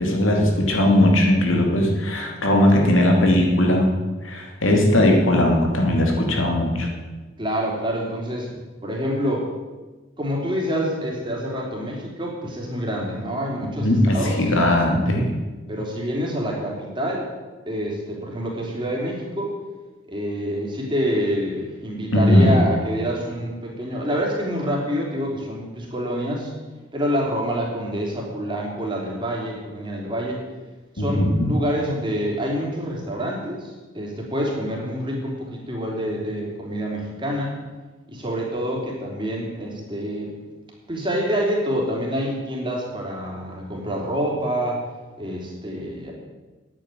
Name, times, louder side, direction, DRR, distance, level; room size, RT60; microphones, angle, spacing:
voice 1, 0.0-3.9 4.2-6.9 13.8-15.3 22.1-22.5 31.0-31.5, left 1 dB, 85° left, 1 dB, 2.7 m, -18 dB
voice 2, 7.4-8.5 8.8-9.5 10.2-14.4 15.7-17.3 17.7-19.5 20.1-26.5 26.9-30.4 30.9-37.5 38.1-40.3 40.9-44.8 45.2-46.1, equal, 25° right, -2 dB, 3.4 m, -27 dB
10.5 x 9.1 x 9.1 m, 1.2 s
head